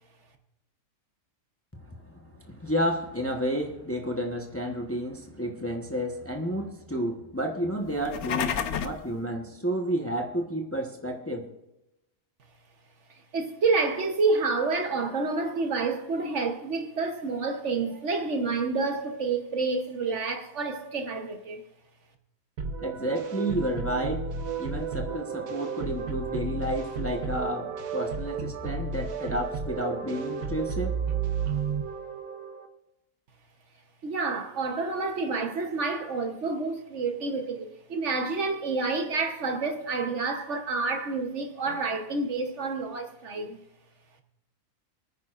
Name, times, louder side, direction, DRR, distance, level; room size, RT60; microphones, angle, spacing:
voice 1, 1.7-11.5 22.8-24.3 24.6-31.0, equal, 10° left, 1.0 m, -31 dB
sound 1, 7.9-9.1, left 7 dB, 65° left, 1.0 m, -30 dB
voice 2, 13.3-21.6 34.0-43.6, right 3 dB, 60° right, 1.3 m, -29 dB
sound 2, 22.6-32.7, right 5 dB, 90° right, 1.5 m, -32 dB
28.0 x 9.5 x 2.5 m
omnidirectional pair, 1.4 m